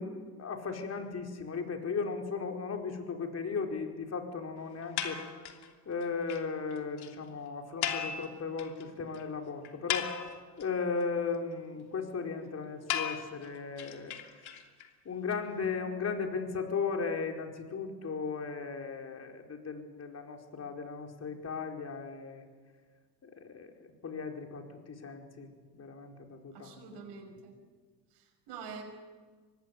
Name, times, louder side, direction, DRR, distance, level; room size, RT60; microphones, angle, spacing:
voice 1, 0.0-5.2 5.8-10.1 10.6-14.1 15.0-22.4 23.2-27.0, left 5 dB, 30° left, 3 dB, 4.7 m, -36 dB
sound 1, 5.0-5.7 6.0-6.1 6.3-6.4 6.7-6.8 7.0-7.1 7.8-8.8 9.1-9.2 9.6-10.6 12.9-14.9, left 9 dB, 50° left, 3.0 m, -36 dB
voice 2, 26.5-27.5 28.1-28.8, right 5 dB, 55° right, 2 dB, 6.1 m, -46 dB
24.5 x 19.0 x 9.6 m, 1.4 s
hypercardioid pair, 80°, 48 cm